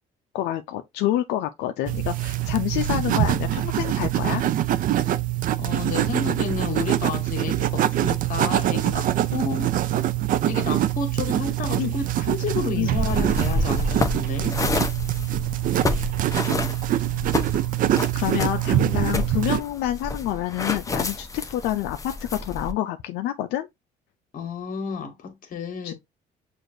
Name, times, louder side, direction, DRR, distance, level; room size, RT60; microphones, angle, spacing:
voice 1, 0.3-4.4 11.8-11.9 12.8-12.9 17.9-23.7 25.8-25.9, left 13 dB, 85° left, 0.4 m, -27 dB
sound 1, 1.9-19.6, right 13 dB, 55° right, 0.4 m, -24 dB
voice 2, 5.6-10.0 10.4-14.6 24.3-25.9, left 5 dB, 55° left, 1.4 m, -31 dB
sound 2, 13.0-22.7, left 2 dB, 20° left, 0.7 m, -29 dB
6.3 x 2.5 x 2.6 m
cardioid pair, 110°, 17 cm